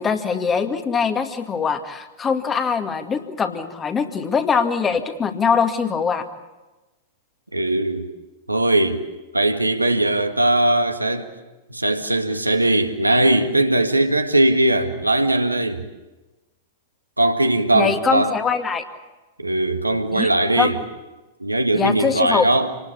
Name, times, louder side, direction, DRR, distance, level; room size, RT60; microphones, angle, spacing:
voice 1, 0.0-6.3 17.7-18.8 20.1-20.3 20.6-20.8 21.7-22.5, left 6 dB, 20° left, 2.1 m, -22 dB
voice 2, 7.5-8.1 8.5-9.0 9.3-11.3 11.7-15.8 17.2-18.3 19.4-20.8 21.4-22.7, right 1 dB, 85° right, 1.9 m, -19 dB
27.5 x 19.5 x 8.5 m
figure-of-eight pair, 100°, 0 cm